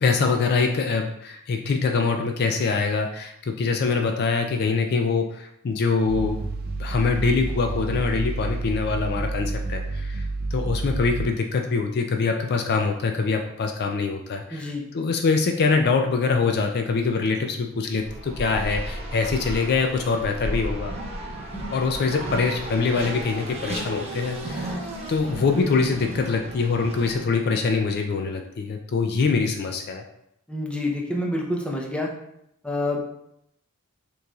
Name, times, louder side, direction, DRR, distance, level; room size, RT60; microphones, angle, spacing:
voice 1, 0.0-6.4 6.8-20.9 21.7-24.8 25.1-30.0, left 4 dB, 45° left, 4 dB, 0.4 m, -24 dB
sound 1, 6.1-11.3, right 3 dB, 45° right, 0.4 m, -29 dB
voice 2, 14.5-14.8 30.5-32.1 32.6-33.0, left 1 dB, 5° left, -1 dB, 0.6 m, -27 dB
Race car auto racing, 17.9-27.6, right 1 dB, 30° right, 0.9 m, -34 dB
6.5 x 3.1 x 2.3 m, 0.77 s
head